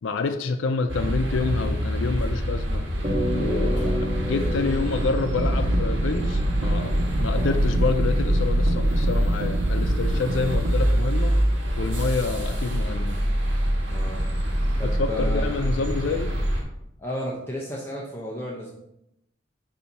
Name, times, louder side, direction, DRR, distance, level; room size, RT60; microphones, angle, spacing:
voice 1, 0.0-2.9 3.4-6.9 7.2-11.4 11.8-13.2 14.8-16.3, left 4 dB, 90° left, 7 dB, 0.5 m, -28 dB
sound 1, 0.9-16.6, equal, 75° right, 1.4 m, -25 dB
sound 2, 3.0-7.7, equal, 35° right, 1.3 m, -31 dB
voice 2, 3.5-3.9 7.3-7.6 13.9-14.2 14.8-15.9 17.0-18.7, equal, 10° left, -4 dB, 0.7 m, -34 dB
sound 3, 5.2-10.7, right 1 dB, 60° right, 0.4 m, -27 dB
7.1 x 2.7 x 5.3 m, 0.82 s
head